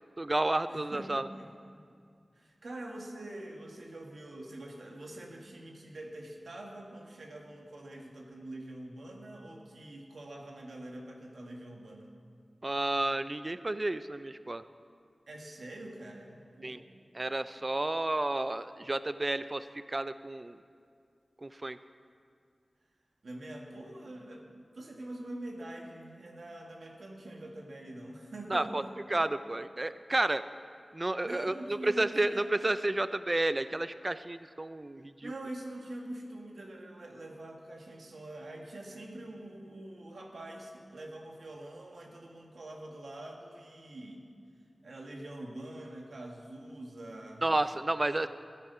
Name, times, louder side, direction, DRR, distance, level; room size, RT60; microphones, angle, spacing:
voice 1, 0.2-1.3 12.6-14.6 16.6-16.8 17.1-20.6 21.4-21.8 28.5-28.8 29.1-30.4 30.9-31.5 31.8-35.3 47.4-48.3, right 2 dB, 30° right, 12 dB, 0.3 m, -31 dB
voice 2, 0.7-1.5 2.3-12.1 15.3-17.1 23.2-28.9 31.2-32.5 35.2-44.2 44.8-47.5, right 1 dB, 80° right, 1 dB, 1.8 m, -45 dB
13.5 x 12.0 x 5.6 m, 2.3 s
wide cardioid pair, 90°, 0 cm